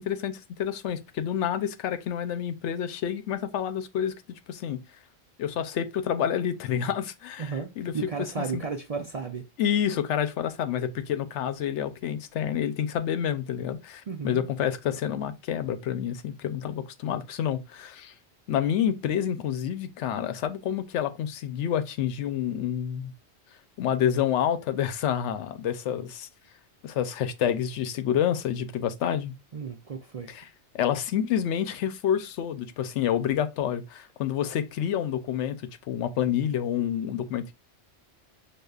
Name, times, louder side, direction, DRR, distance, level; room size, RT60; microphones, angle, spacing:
voice 1, 0.0-4.8 5.4-8.0 8.4-8.6 9.6-18.1 18.5-23.1 23.8-26.3 26.8-29.3 30.3-30.5 30.7-35.6 35.9-37.5, left 9 dB, 85° left, 0.9 m, -28 dB
voice 2, 7.4-9.4 14.1-14.5 29.5-30.3, right 5 dB, 50° right, 0.4 m, -33 dB
6.5 x 2.3 x 2.3 m
omnidirectional pair, 1.2 m